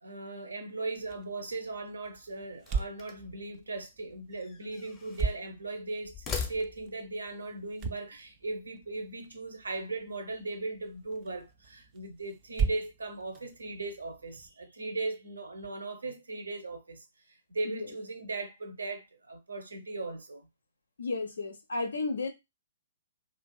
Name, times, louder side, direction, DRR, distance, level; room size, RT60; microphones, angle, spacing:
voice 1, 0.0-20.5, right 2 dB, 70° right, 0.6 m, -38 dB
sound 1, 0.9-14.5, right 5 dB, 25° right, 0.3 m, -40 dB
sound 2, 2.6-3.4 4.3-5.4 6.0-7.1, left 5 dB, 20° left, 0.6 m, -40 dB
voice 2, 21.0-22.3, left 3 dB, 65° left, 0.4 m, -33 dB
2.4 x 2.4 x 2.3 m
figure-of-eight pair, 120°, 0 cm